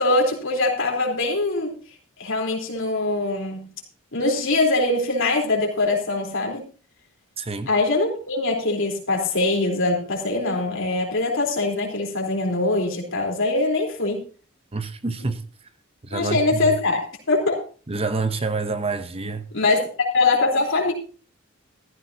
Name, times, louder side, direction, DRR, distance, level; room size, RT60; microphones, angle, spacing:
voice 1, 0.0-1.8 2.2-3.7 4.1-6.7 7.7-14.3 15.2-15.3 16.1-17.6 19.5-20.9, left 2 dB, 65° left, 3.8 m, -23 dB
voice 2, 7.4-7.7 14.7-15.4 16.0-16.8 17.9-19.5, right 3 dB, 30° right, 0.8 m, -27 dB
14.5 x 14.5 x 2.8 m
head